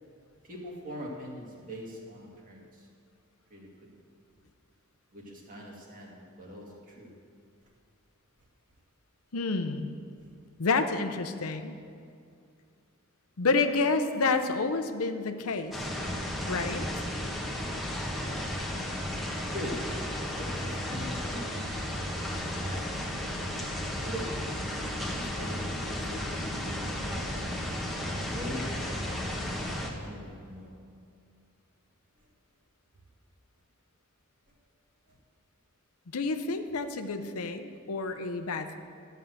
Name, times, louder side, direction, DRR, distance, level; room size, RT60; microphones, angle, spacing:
voice 1, 0.5-2.6 3.5-3.7 5.1-7.1 19.5-19.9 20.4-21.6 22.5-23.0 24.0-24.4 24.8-27.4 28.3-29.6 29.9-30.8, equal, 40° right, -2 dB, 2.2 m, -42 dB
voice 2, 9.3-9.9 10.6-11.7 13.4-15.9 16.5-16.9 36.1-38.8, left 3 dB, 75° left, 8 dB, 0.7 m, -29 dB
sound 1, 15.7-29.9, left 1 dB, ahead, 1.3 m, -34 dB
13.0 x 5.6 x 7.8 m, 2.3 s
head